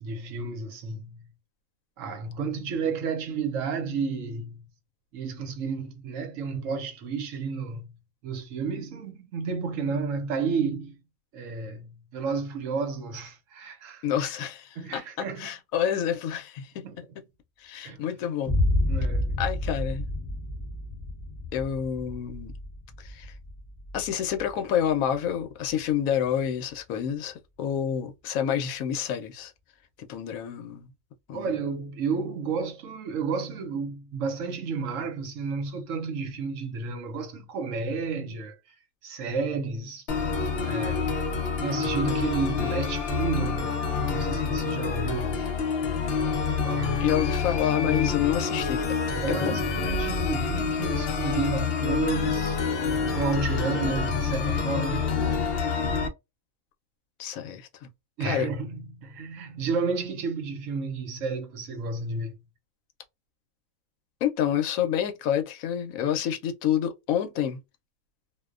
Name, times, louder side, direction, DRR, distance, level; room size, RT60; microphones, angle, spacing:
voice 1, 0.0-1.3 2.0-4.7 5.1-8.0 8.2-10.9 11.3-14.0 14.8-15.5 16.8-17.0 17.8-18.1 18.9-19.4 31.3-38.7 39.0-40.1 40.6-41.3 41.6-45.5 46.6-47.2 49.2-52.6 53.1-55.1 58.2-62.4, right 5 dB, 70° right, 1.0 m, -31 dB
voice 2, 14.0-16.9 17.6-18.6 19.4-20.1 21.5-22.5 23.0-23.4 23.9-29.5 30.0-30.9 31.3-31.6 47.0-48.8 49.3-49.6 53.7-54.0 57.2-57.9 58.2-58.5 64.2-67.6, left 9 dB, 80° left, 1.0 m, -28 dB
Boom, 18.5-26.3, left 1 dB, 25° left, 0.6 m, -30 dB
sound 1, 40.1-56.1, left 5 dB, 60° left, 0.7 m, -27 dB
2.5 x 2.1 x 2.3 m
omnidirectional pair, 1.4 m